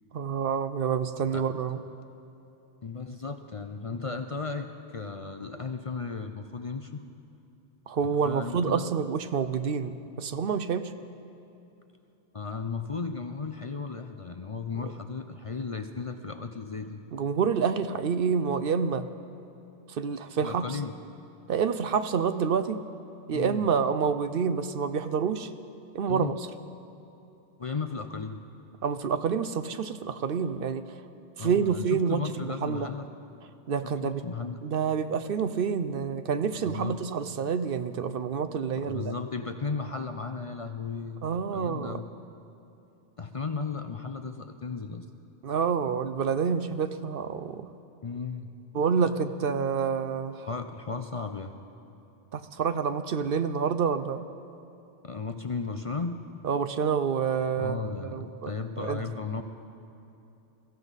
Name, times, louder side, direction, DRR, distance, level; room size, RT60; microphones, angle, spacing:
voice 1, 0.1-1.8 7.9-10.9 14.8-14.9 17.1-19.1 19.9-20.8 21.5-22.8 23.3-25.5 25.9-26.3 28.8-31.0 31.4-32.9 33.7-34.2 34.6-39.1 41.2-42.0 45.4-47.7 48.7-50.5 52.3-54.2 56.4-58.5 58.8-59.0, right 6 dB, 65° right, 11 dB, 0.8 m, -28 dB
voice 2, 2.8-7.0 8.0-8.9 12.3-17.0 20.4-21.0 23.3-23.7 26.1-26.3 27.6-28.4 31.4-33.1 33.8-34.6 36.5-37.0 38.8-41.2 41.5-42.1 43.2-45.1 48.0-48.5 50.5-51.5 55.0-56.2 57.6-59.4, left 4 dB, 40° left, 7 dB, 0.5 m, -35 dB
22.5 x 15.0 x 4.1 m, 2.9 s
omnidirectional pair, 1.1 m